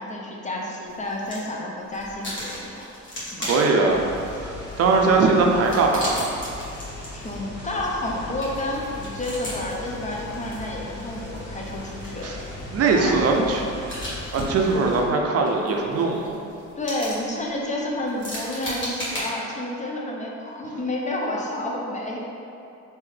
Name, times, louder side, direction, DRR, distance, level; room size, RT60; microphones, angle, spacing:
voice 1, 0.0-2.9 3.3-3.5 7.1-12.3 12.9-13.3 16.8-22.2, left 1 dB, 25° left, -2 dB, 0.5 m, -30 dB
sound 1, 0.9-1.5 1.8-19.2, equal, 40° left, 1.4 m, -37 dB
voice 2, 3.4-4.1 4.4-6.3 12.2-12.4 12.7-13.6 14.3-16.4, right 3 dB, 55° right, 1 dB, 0.5 m, -21 dB
sound 2, 3.8-15.0, left 1 dB, 70° left, 1.4 m, -38 dB
3.7 x 2.7 x 3.3 m, 2.6 s
cardioid pair, 90°, 30 cm